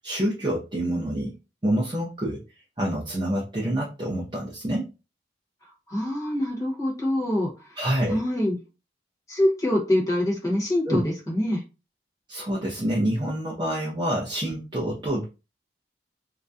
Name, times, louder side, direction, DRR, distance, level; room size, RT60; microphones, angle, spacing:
voice 1, 0.0-1.3 1.6-2.4 2.8-4.9 7.8-8.2 10.9-11.0 12.3-15.2, right 1 dB, 25° right, -4 dB, 0.4 m, -27 dB
voice 2, 5.9-7.8 8.1-8.6 9.3-11.6, left 1 dB, 20° left, -3 dB, 0.9 m, -25 dB
2.3 x 2.1 x 2.5 m, 0.29 s
head